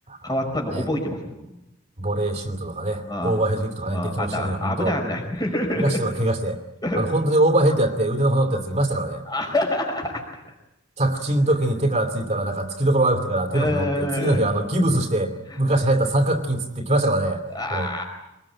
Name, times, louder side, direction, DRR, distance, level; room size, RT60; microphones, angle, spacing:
voice 1, 0.2-1.3 3.0-3.4 3.9-6.0 6.8-7.0 9.3-10.4 13.5-14.4 15.5-15.6 17.5-18.0, left 1 dB, 20° left, 2 dB, 4.9 m, -26 dB
voice 2, 2.0-5.0 5.8-6.6 6.9-9.2 11.0-17.4 17.7-17.9, right 1 dB, 35° right, 5 dB, 2.7 m, -22 dB
25.0 x 20.5 x 8.9 m, 0.93 s
head